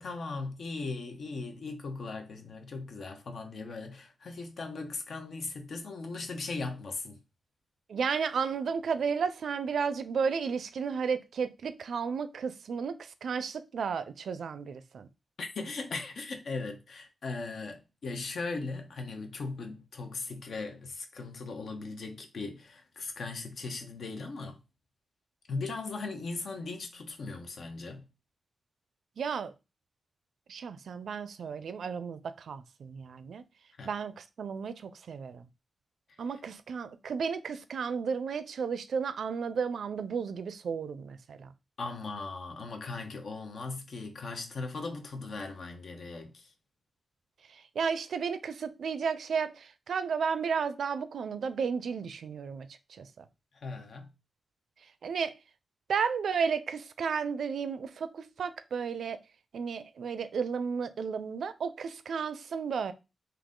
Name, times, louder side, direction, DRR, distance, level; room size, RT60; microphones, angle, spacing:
voice 1, 0.0-7.2 15.4-24.6 25.5-28.1 33.8-33.9 41.8-46.5 53.5-54.1, left 3 dB, 75° left, 0.9 m, -38 dB
voice 2, 7.9-15.1 29.2-29.5 30.5-33.4 33.8-35.5 36.2-41.5 47.5-53.2 55.0-55.3 55.9-59.2 59.5-62.9, right 6 dB, 90° right, 0.4 m, -33 dB
3.9 x 2.7 x 3.7 m
wide cardioid pair, 105°, 0 cm